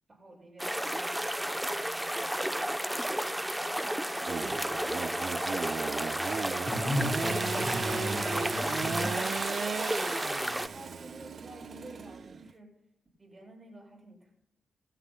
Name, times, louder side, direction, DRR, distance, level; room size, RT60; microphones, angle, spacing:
voice 1, 0.1-3.4 3.8-4.8 10.5-12.7 13.2-14.3, right 1 dB, 30° right, 1 dB, 7.1 m, -51 dB
sound 1, 0.6-10.7, equal, 5° right, 0.7 m, -32 dB
Engine / Sawing, 4.3-12.5, right 6 dB, 60° right, 0.5 m, -36 dB
voice 2, 6.7-9.4, left 1 dB, 30° left, 0 dB, 3.4 m, -34 dB
27.0 x 13.0 x 2.2 m, 0.78 s
cardioid pair, 90°, 0 cm